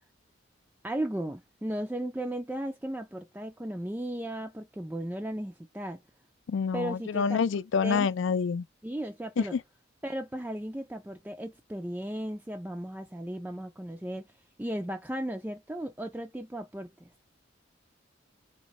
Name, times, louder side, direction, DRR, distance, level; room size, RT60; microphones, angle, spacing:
voice 1, 0.8-6.0 6.7-7.4 7.8-8.1 8.8-9.6 10.0-14.3 14.6-17.1, right 1 dB, 10° right, 0.3 m, -35 dB
voice 2, 6.5-8.6 9.4-9.6, left 6 dB, 65° left, 0.4 m, -27 dB
4.1 x 2.9 x 4.1 m
head